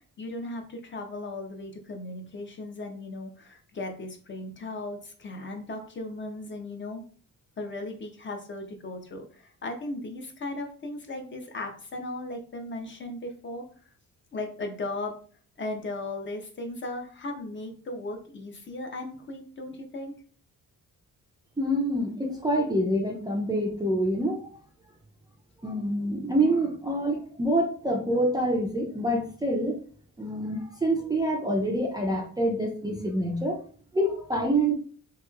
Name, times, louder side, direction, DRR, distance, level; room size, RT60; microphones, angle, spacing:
voice 1, 0.2-7.0 7.6-13.6 14.3-15.2 15.6-20.1, left 2 dB, 35° left, 4 dB, 0.6 m, -37 dB
voice 2, 21.6-24.5 25.6-29.8 30.2-33.6 33.9-34.7, right 1 dB, 10° right, 0 dB, 0.4 m, -26 dB
2.9 x 2.8 x 2.3 m, 0.43 s
cardioid pair, 125°, 33 cm